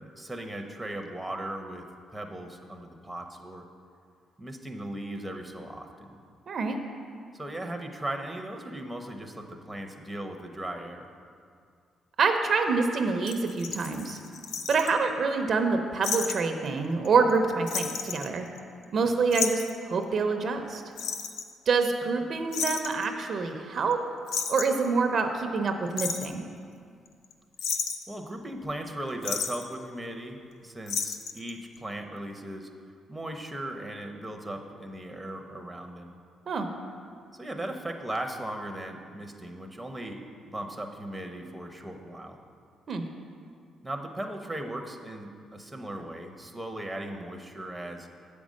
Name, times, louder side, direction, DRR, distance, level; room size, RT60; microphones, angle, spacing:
voice 1, 0.0-1.8 2.1-3.6 4.4-6.2 7.3-11.1 18.9-19.1 28.1-32.7 33.1-36.1 37.3-40.2 40.5-42.4 43.8-48.1, right 1 dB, 5° right, 3 dB, 0.8 m, -37 dB
voice 2, 6.5-6.8 12.2-14.2 14.7-18.5 18.9-20.8 21.7-24.0 24.5-26.5 36.5-36.7 42.9-43.0, right 4 dB, 55° right, 5 dB, 0.6 m, -26 dB
sound 1, 13.3-14.9 16.0-16.4 16.7-16.8 17.0-17.4 17.7-18.8 19.3-19.8 21.0-21.5 22.5-23.1 23.9-24.0 24.3-24.9 25.7-26.3 27.1-27.3 27.6-28.1 29.2-29.6 30.9-31.5 31.8-31.9, left 6 dB, 80° left, 0.5 m, -32 dB
7.9 x 5.2 x 6.3 m, 2.2 s
cardioid pair, 90°, 0 cm